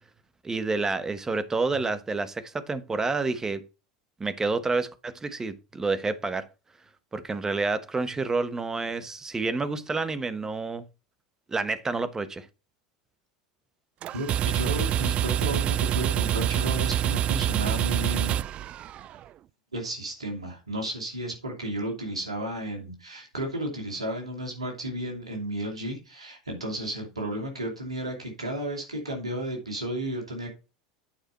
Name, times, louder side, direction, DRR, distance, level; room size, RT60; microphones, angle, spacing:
voice 1, 0.4-3.6 4.2-6.5 7.1-10.8 11.5-12.5, right 3 dB, 15° right, 1.1 m, -29 dB
sound 1, 14.0-19.2, right 11 dB, 40° right, 0.3 m, -26 dB
voice 2, 14.1-18.4 19.7-30.5, right 1 dB, 85° right, 2.6 m, -33 dB
9.0 x 4.8 x 4.4 m
figure-of-eight pair, 80°, 3 cm